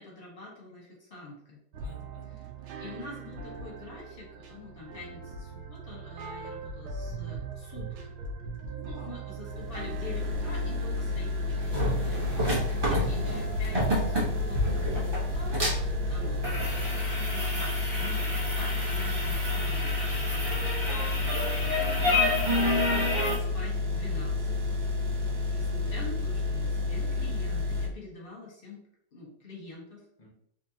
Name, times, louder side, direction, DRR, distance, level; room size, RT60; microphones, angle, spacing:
voice 1, 0.0-1.6 2.2-2.5 2.8-7.9 8.7-20.7 21.8-24.7 25.4-28.8 29.1-30.0, left 3 dB, 45° left, -3 dB, 0.7 m, -45 dB
sound 1, 1.7-16.9, right 3 dB, 80° right, 1.5 m, -40 dB
voice 2, 1.8-2.3 8.8-9.1 12.4-12.9 18.5-18.6 21.1-21.6 30.2-30.3, left 2 dB, 75° left, -3 dB, 0.4 m, -52 dB
sound 2, 9.4-27.9, left 3 dB, 60° right, 1.6 m, -30 dB
sound 3, 11.6-23.4, left 1 dB, 30° right, 0.4 m, -30 dB
4.3 x 2.9 x 2.8 m, 0.71 s
omnidirectional pair, 2.4 m